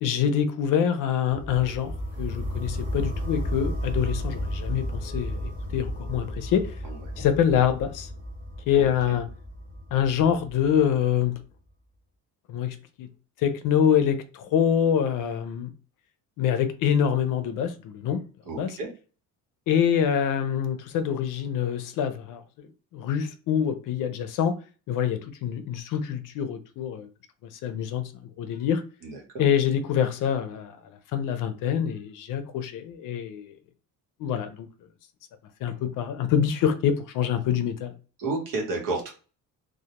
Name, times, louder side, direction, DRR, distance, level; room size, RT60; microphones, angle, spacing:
voice 1, 0.0-1.9 2.2-6.7 7.2-8.1 8.7-9.3 9.9-11.4 12.5-13.1 13.4-15.7 16.4-18.2 18.6-18.7 19.7-22.4 22.9-24.5 24.9-27.1 27.6-28.1 28.4-28.8 29.4-30.7 31.1-33.5 34.2-34.7 35.6-37.9, left 8 dB, 70° left, 0.5 m, -25 dB
sound 1, 1.3-11.2, equal, 25° right, 0.6 m, -33 dB
voice 2, 6.8-7.2 8.7-9.2 18.5-18.9 29.0-29.5 38.2-39.1, right 3 dB, 75° right, 1.0 m, -32 dB
2.2 x 2.1 x 2.9 m
cardioid pair, 150°, 33 cm